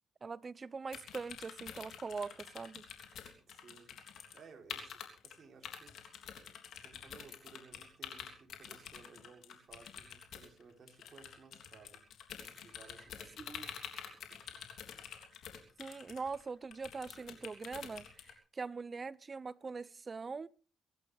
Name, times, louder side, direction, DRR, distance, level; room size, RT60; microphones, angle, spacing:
voice 1, 0.2-2.8 13.4-13.7 15.8-20.5, right 4 dB, 35° right, 0.7 m, -42 dB
sound 1, 0.9-4.4 4.7-5.4 5.6-18.3, left 8 dB, 75° left, 3.3 m, -48 dB
voice 2, 3.5-3.9 4.3-6.0 6.8-12.0 12.6-13.5 13.8-14.0, right 5 dB, 50° right, 3.8 m, -58 dB
24.0 x 11.5 x 3.5 m
cardioid pair, 85°, 0 cm